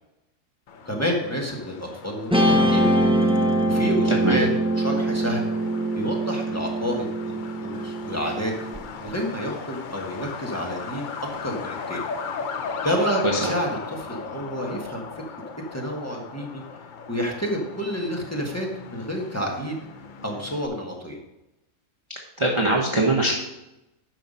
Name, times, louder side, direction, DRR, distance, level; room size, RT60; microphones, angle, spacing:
Truck, 0.7-20.7, left 5 dB, 60° left, 0.5 m, -38 dB
voice 1, 0.8-2.9 3.7-4.5 4.8-5.5 5.9-7.3 7.6-8.5 9.0-11.1 11.4-12.0 12.8-15.0 15.7-16.6 17.1-19.8 20.2-21.2, equal, 10° left, -1 dB, 1.3 m, -29 dB
Guitar, 2.3-8.8, right 1 dB, 5° right, 0.6 m, -23 dB
voice 2, 4.1-4.4 13.2-13.5 22.4-23.3, right 2 dB, 25° right, -1 dB, 0.9 m, -21 dB
9.3 x 5.8 x 5.5 m, 0.94 s
omnidirectional pair, 1.5 m